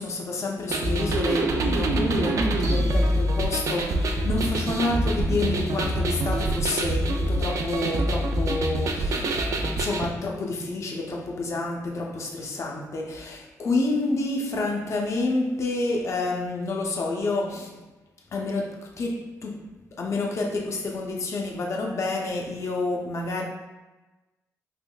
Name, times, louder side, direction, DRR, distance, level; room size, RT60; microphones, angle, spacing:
voice 1, 0.0-17.8 18.3-23.4, left 2 dB, 50° left, 0.6 m, -29 dB
sound 1, 0.7-10.1, right 1 dB, 60° right, 0.4 m, -25 dB
3.5 x 3.0 x 2.3 m
cardioid pair, 90°, 6 cm